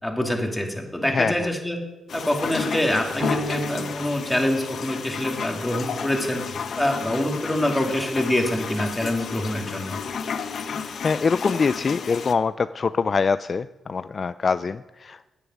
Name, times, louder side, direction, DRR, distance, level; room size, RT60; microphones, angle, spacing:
voice 1, 0.0-1.8 2.1-6.4 6.8-10.0, left 1 dB, 10° left, 2 dB, 2.6 m, -25 dB
sound 1, 2.1-12.3, left 6 dB, 65° left, 0.9 m, -32 dB
sound 2, 3.2-5.5, equal, 30° right, 3.9 m, -33 dB
voice 2, 11.0-15.3, left 5 dB, 45° left, 14 dB, 0.3 m, -24 dB
10.5 x 6.8 x 9.4 m, 1.1 s
cardioid pair, 75°, 0 cm